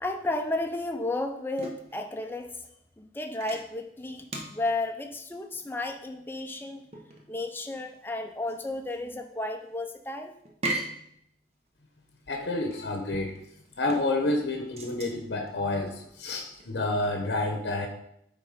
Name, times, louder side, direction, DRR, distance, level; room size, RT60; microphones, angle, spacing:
voice 1, 0.0-2.5 3.0-6.9 7.3-10.3, left 2 dB, 10° left, 4 dB, 0.6 m, -33 dB
sound 1, 0.8-17.3, right 2 dB, 35° right, 1.2 m, -41 dB
voice 2, 12.3-13.3 13.8-17.9, left 2 dB, 75° left, 4 dB, 0.9 m, -29 dB
9.2 x 3.8 x 5.0 m, 0.73 s
head